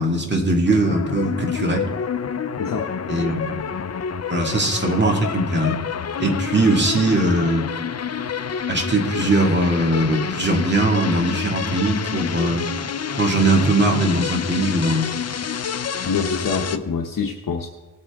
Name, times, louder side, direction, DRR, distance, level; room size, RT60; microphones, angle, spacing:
voice 1, 0.0-1.9 3.1-3.6 4.3-5.8 6.2-7.7 8.7-12.7 13.2-15.1, right 2 dB, 30° right, 1 dB, 2.0 m, -20 dB
sound 1, 0.7-16.8, left 7 dB, 45° left, 0.5 m, -28 dB
voice 2, 2.6-2.9 16.0-17.7, left 5 dB, 65° left, 2 dB, 0.9 m, -25 dB
19.0 x 8.3 x 3.5 m, 1.2 s
wide cardioid pair, 115°, 35 cm